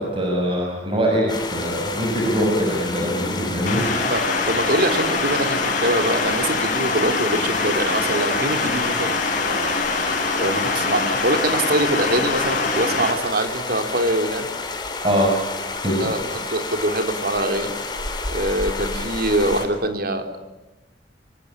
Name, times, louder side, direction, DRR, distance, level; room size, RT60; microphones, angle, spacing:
voice 1, 0.0-3.9 15.0-15.3 15.8-16.1, equal, 30° right, -1 dB, 6.3 m, -22 dB
sound 1, 1.3-19.7, left 3 dB, 25° left, 4.3 m, -30 dB
sound 2, 3.7-13.1, left 4 dB, 45° left, 5.5 m, -24 dB
voice 2, 4.1-9.7 10.4-14.5 16.0-17.7 18.3-20.4, right 1 dB, 60° right, 6 dB, 3.6 m, -24 dB
25.5 x 25.0 x 8.9 m, 1.0 s
head